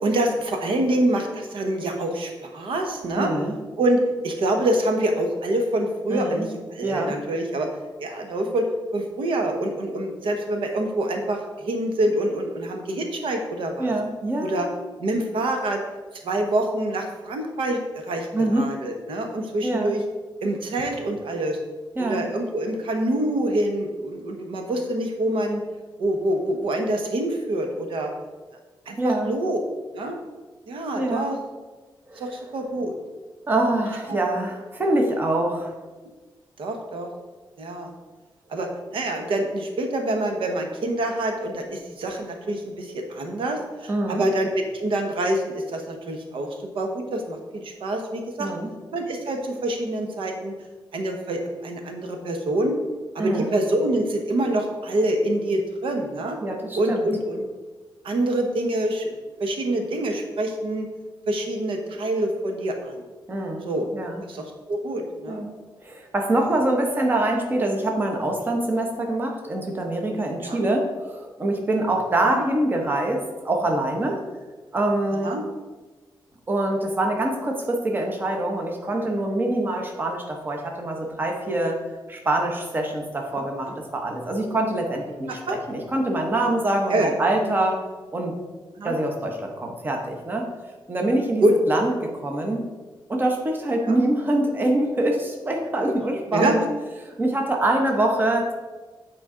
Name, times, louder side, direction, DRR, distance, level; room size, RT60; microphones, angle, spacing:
voice 1, 0.0-3.3 3.8-7.7 8.0-8.7 8.9-13.9 14.4-14.7 15.0-15.8 16.2-18.3 18.5-20.0 20.4-21.6 22.0-25.6 26.0-28.1 28.9-29.6 29.9-30.2 30.7-31.4 32.2-32.9 34.1-34.2 36.6-37.1 37.6-37.9 38.5-46.5 46.7-48.5 48.9-50.5 50.9-52.7 53.1-56.4 56.7-57.4 58.0-59.1 59.4-60.9 61.3-63.1 63.7-63.9 64.3-65.4 70.4-70.6 72.2-72.4 75.2-75.4 83.3-83.8 85.3-85.6 86.9-87.1 88.8-88.9 91.4-91.5 93.8-94.0 95.8-95.9 96.3-96.6, right 1 dB, 85° right, 4 dB, 1.0 m, -26 dB
voice 2, 3.2-3.6 6.1-6.5 6.8-7.1 13.8-14.7 18.3-18.7 19.6-19.9 22.0-22.2 29.0-29.3 30.9-31.3 32.1-32.3 33.5-35.7 43.9-44.2 48.4-48.7 53.2-53.5 56.4-57.1 63.3-64.2 65.3-65.5 65.8-74.2 74.7-75.3 76.5-81.8 82.1-87.8 88.1-88.3 88.8-90.5 90.9-92.6 93.1-96.6 97.1-98.5, right 1 dB, 25° right, 2 dB, 0.8 m, -25 dB
8.9 x 4.4 x 3.7 m, 1.3 s
wide cardioid pair, 175°, 9 cm